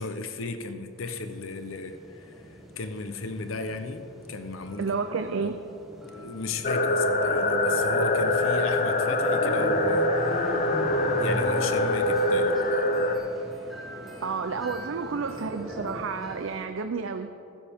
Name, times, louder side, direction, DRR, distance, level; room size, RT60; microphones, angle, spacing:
voice 1, 0.0-4.9 5.4-5.5 6.1-10.7 11.2-12.9, left 3 dB, 85° left, 8 dB, 0.8 m, -35 dB
sound 1, 1.0-16.7, equal, ahead, 1.8 m, -39 dB
voice 2, 4.8-5.6 14.2-17.3, right 5 dB, 75° right, 8 dB, 0.5 m, -30 dB
sound 2, 6.6-13.2, left 1 dB, 40° left, 0.8 m, -24 dB
15.5 x 13.0 x 3.6 m, 2.7 s
head